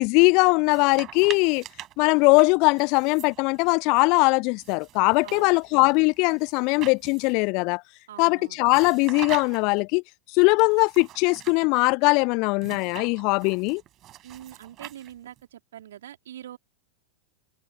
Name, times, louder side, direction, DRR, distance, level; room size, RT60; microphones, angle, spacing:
voice 1, 0.0-1.6 2.0-7.8 8.2-10.0 10.3-13.8, left 30 dB, 45° left, 1.1 m, -21 dB
sound 1, 0.6-4.0 4.6-7.5 8.7-9.8 10.6-11.7 12.6-15.4, right 13 dB, 35° right, 5.4 m, -43 dB
voice 2, 5.2-5.6 8.1-8.6 14.2-16.6, right 11 dB, 60° right, 3.5 m, -43 dB
figure-of-eight pair, 90°, 0 cm